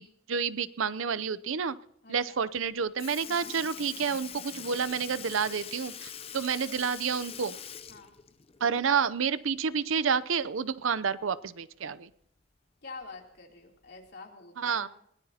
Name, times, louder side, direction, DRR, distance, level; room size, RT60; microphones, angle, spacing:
voice 1, 0.0-1.8 2.1-7.5 8.6-12.1 14.6-14.9, right 6 dB, 80° right, 16 dB, 0.6 m, -29 dB
voice 2, 2.0-2.4 3.2-3.5 6.6-6.9 7.9-8.1 12.8-14.9, left 3 dB, 55° left, 0 dB, 3.1 m, -47 dB
Sink (filling or washing) / Liquid, 2.6-2.7 3.0-9.1 9.4-9.5 11.1-11.2 12.1-12.2 13.0-13.3 14.1-14.2, left 8 dB, 30° left, 0.6 m, -43 dB
21.5 x 17.5 x 2.9 m, 0.75 s
head